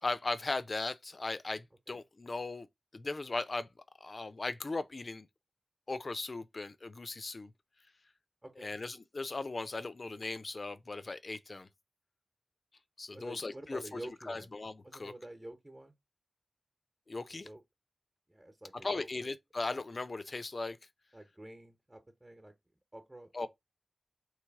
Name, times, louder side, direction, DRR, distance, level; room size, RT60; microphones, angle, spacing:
voice 1, 0.0-2.7 2.9-3.7 4.0-5.3 5.9-7.5 8.6-11.7 13.0-14.0 14.3-15.1 17.1-17.5 18.8-20.8 23.3-23.5, left 3 dB, 50° left, 0.6 m, -38 dB
voice 2, 8.4-8.7 13.1-14.5 14.8-15.9 17.3-17.6 18.3-19.3 21.1-22.5 22.9-23.5, right 1 dB, 20° right, 1.1 m, -49 dB
3.3 x 3.3 x 4.6 m
cardioid pair, 50°, 0 cm